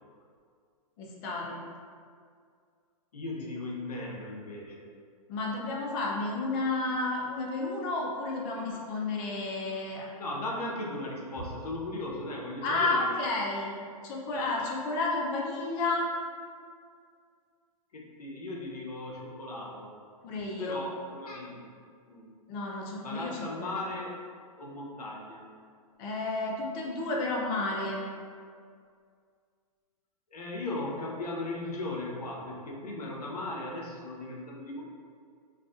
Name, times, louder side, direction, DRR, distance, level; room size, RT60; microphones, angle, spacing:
voice 1, 1.0-1.6 5.3-10.1 12.6-13.7 14.0-16.0 20.2-20.8 22.5-23.8 26.0-28.0, left 2 dB, 35° left, -2 dB, 0.4 m, -31 dB
voice 2, 3.1-4.9 10.2-13.1 14.3-14.6 17.9-20.0 20.6-21.7 22.1-22.3 23.0-24.2 24.6-25.5 30.3-34.8, left 2 dB, 90° left, -1 dB, 0.5 m, -37 dB
2.5 x 2.4 x 2.4 m, 2.2 s
hypercardioid pair, 130°, 19 cm